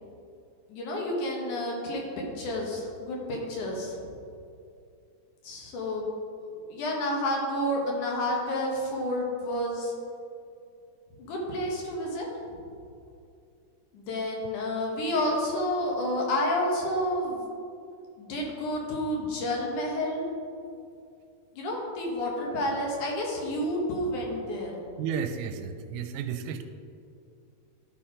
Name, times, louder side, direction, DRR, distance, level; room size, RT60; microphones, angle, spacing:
voice 1, 0.7-2.0 2.4-4.1 5.4-6.1 6.7-9.9 11.2-12.6 13.9-17.4 18.2-20.3 21.6-24.7, left 1 dB, 75° left, -1 dB, 2.8 m, -30 dB
voice 2, 25.0-26.6, right 7 dB, 85° right, 8 dB, 2.1 m, -32 dB
12.5 x 4.3 x 5.0 m, 2.5 s
omnidirectional pair, 3.6 m